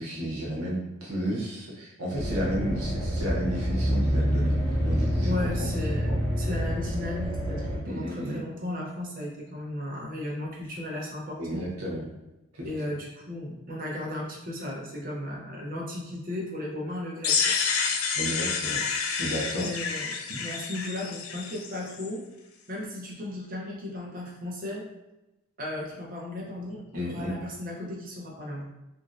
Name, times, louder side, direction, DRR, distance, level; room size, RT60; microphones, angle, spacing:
voice 1, 0.0-4.5 4.8-5.7 6.1-6.2 7.9-8.4 11.4-12.1 12.5-12.7 18.1-18.8 19.2-19.7 20.3-20.4 26.9-27.3, equal, 85° right, -3 dB, 0.8 m, -32 dB
sound 1, 2.1-7.8, equal, 15° left, 0.9 m, -27 dB
voice 2, 5.2-6.1 6.4-11.6 12.6-18.0 19.5-22.2 22.7-24.8 25.6-28.6, left 1 dB, 40° right, -2 dB, 0.6 m, -35 dB
sound 2, 17.2-22.1, left 5 dB, 70° left, 0.4 m, -29 dB
3.0 x 2.6 x 2.5 m, 0.97 s
head